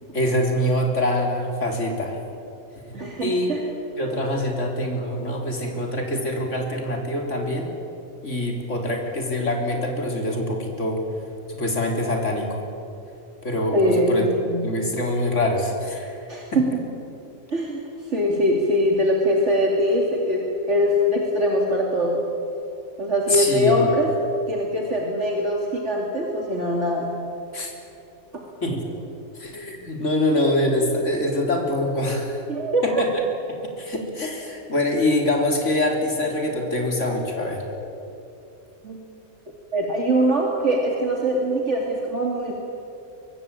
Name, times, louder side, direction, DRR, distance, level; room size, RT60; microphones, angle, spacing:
voice 1, 0.1-2.2 3.2-3.5 4.0-7.7 8.2-11.0 11.5-12.6 13.4-14.3 14.6-16.6 23.3-23.9 27.5-27.7 28.6-28.8 29.4-32.4 32.8-33.1 33.8-37.7, left 1 dB, 55° left, 2 dB, 4.0 m, -24 dB
voice 2, 2.9-3.6 13.7-14.6 16.3-16.7 17.5-22.2 23.0-24.1 24.5-27.1 28.3-28.4 32.5-33.0 38.8-39.0 39.7-42.5, equal, 55° right, -1 dB, 2.9 m, -22 dB
23.5 x 23.0 x 8.9 m, 2.8 s
omnidirectional pair, 1.5 m